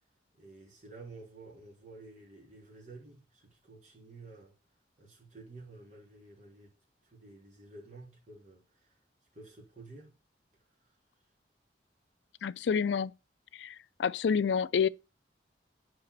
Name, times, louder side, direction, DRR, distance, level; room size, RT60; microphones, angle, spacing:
voice 1, 0.4-4.5 5.0-6.7 7.0-8.9 9.3-10.1, right 3 dB, 45° right, 3.2 m, -51 dB
voice 2, 12.4-13.1 13.5-14.9, left 6 dB, 75° left, 0.4 m, -29 dB
6.6 x 5.1 x 6.6 m
head